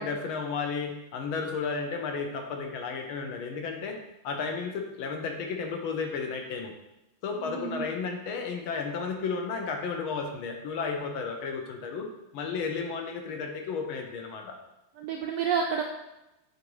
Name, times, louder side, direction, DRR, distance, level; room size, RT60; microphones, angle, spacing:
voice 1, 0.0-4.0 4.2-6.7 7.2-12.1 12.3-14.6, left 5 dB, 75° left, 3 dB, 1.6 m, -33 dB
voice 2, 7.4-7.9 15.0-15.8, right 6 dB, 80° right, 2 dB, 1.0 m, -30 dB
7.5 x 2.7 x 4.7 m, 0.93 s
omnidirectional pair, 2.4 m